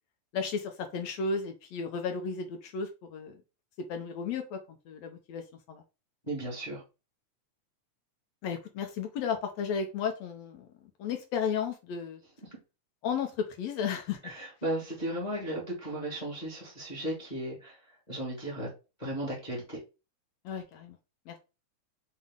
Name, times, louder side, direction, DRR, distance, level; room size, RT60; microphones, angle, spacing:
voice 1, 0.3-3.4 3.9-4.6 4.9-5.4 5.7-5.8 8.4-10.7 11.0-12.2 13.0-14.2 20.4-21.0 21.3-21.4, left 6 dB, 75° left, 1.6 m, -33 dB
voice 2, 6.3-6.8 12.4-12.5 14.2-17.8 18.1-18.7 19.0-19.8, right 1 dB, 40° left, 0.5 m, -35 dB
5.6 x 2.0 x 3.5 m
omnidirectional pair, 3.4 m